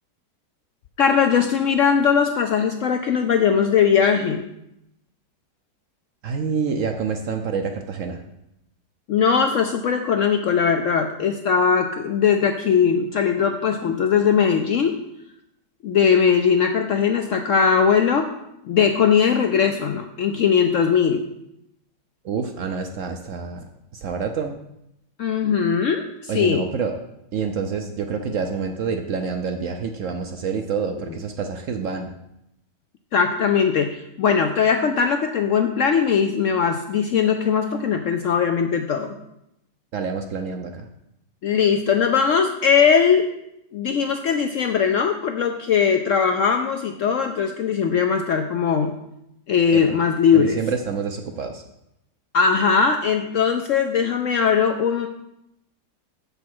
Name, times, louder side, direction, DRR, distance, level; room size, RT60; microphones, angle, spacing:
voice 1, 1.0-4.5 9.1-15.0 15.8-18.3 18.7-21.2 25.2-26.7 33.1-39.1 41.4-43.3 43.7-48.9 49.5-50.6 52.3-55.1, left 6 dB, 70° left, 5 dB, 0.7 m, -20 dB
voice 2, 6.2-8.2 22.2-23.6 23.9-24.6 26.3-27.0 27.3-32.1 39.9-40.9 49.7-49.8 50.3-51.6, right 5 dB, 65° right, 5 dB, 0.8 m, -27 dB
7.2 x 5.4 x 6.0 m, 0.83 s
omnidirectional pair, 1.8 m